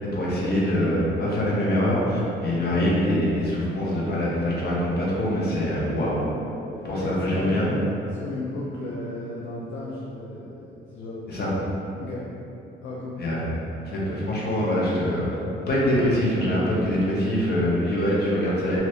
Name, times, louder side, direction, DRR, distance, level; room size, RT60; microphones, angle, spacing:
voice 1, 0.0-6.3 6.8-7.7 11.3-11.5 13.2-13.5 13.8-15.3 15.7-18.8, equal, 55° left, -6 dB, 0.9 m, -24 dB
voice 2, 6.9-7.9 8.2-11.2 12.0-12.2 12.8-13.2, left 2 dB, 75° left, -5 dB, 0.5 m, -34 dB
2.8 x 2.6 x 3.1 m, 2.9 s
cardioid pair, 90°, 20 cm